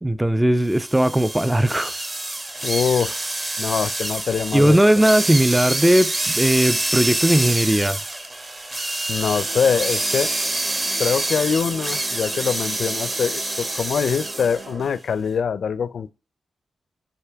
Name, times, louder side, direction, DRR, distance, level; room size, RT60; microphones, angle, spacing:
voice 1, 0.0-1.9 4.5-8.0, right 1 dB, 5° right, 0.3 m, -18 dB
sound 1, 0.7-14.7, right 2 dB, 25° right, 1.0 m, -26 dB
voice 2, 2.6-5.0 9.1-10.3 11.0-16.1, left 7 dB, 70° left, 0.4 m, -24 dB
sound 2, 9.2-14.9, right 3 dB, 55° right, 1.7 m, -40 dB
10.0 x 5.1 x 3.4 m
wide cardioid pair, 115°, 0 cm